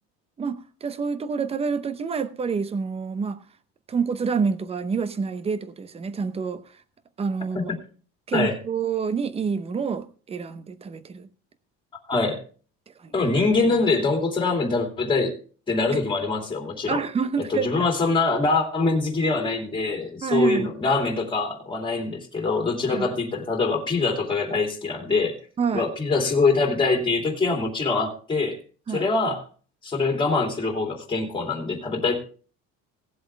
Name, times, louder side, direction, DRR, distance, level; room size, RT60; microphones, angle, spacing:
voice 1, 0.4-3.4 3.9-6.6 7.2-7.7 8.3-11.3 13.0-13.1 15.9-16.0 16.9-17.8 20.2-20.7 22.9-23.1 25.6-25.9 28.9-29.0, right 5 dB, 20° right, 0.7 m, -27 dB
voice 2, 12.1-12.4 13.1-15.4 15.7-17.0 17.4-25.4 25.7-28.6 28.9-29.4 29.8-32.1, left 3 dB, 15° left, 2.6 m, -24 dB
17.5 x 7.8 x 3.4 m
cardioid pair, 150°, 29 cm